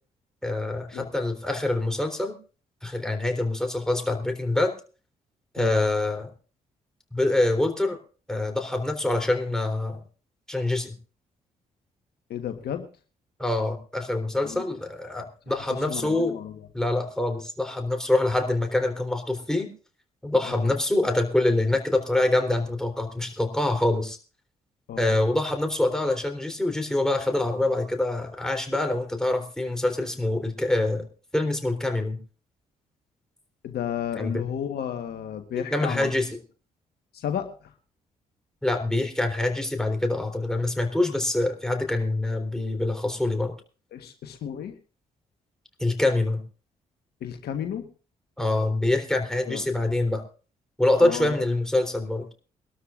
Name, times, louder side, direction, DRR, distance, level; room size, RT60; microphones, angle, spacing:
voice 1, 0.4-2.4 2.8-4.7 5.5-6.3 7.1-8.0 8.3-10.0 10.5-10.9 13.4-16.4 16.7-19.7 20.2-24.2 25.0-31.1 31.3-32.2 34.2-34.4 35.7-36.3 38.6-43.5 45.8-46.4 48.4-50.2 50.8-52.3, left 2 dB, 5° left, 3 dB, 3.6 m, -25 dB
voice 2, 12.3-12.9 14.4-14.7 15.5-15.6 15.9-16.6 20.5-20.7 24.9-25.1 33.6-36.1 37.1-37.7 43.9-44.7 47.2-47.9 49.5-49.6 51.0-51.3, left 9 dB, 65° left, 6 dB, 1.4 m, -33 dB
23.5 x 12.5 x 2.5 m, 0.37 s
hypercardioid pair, 45°, 18 cm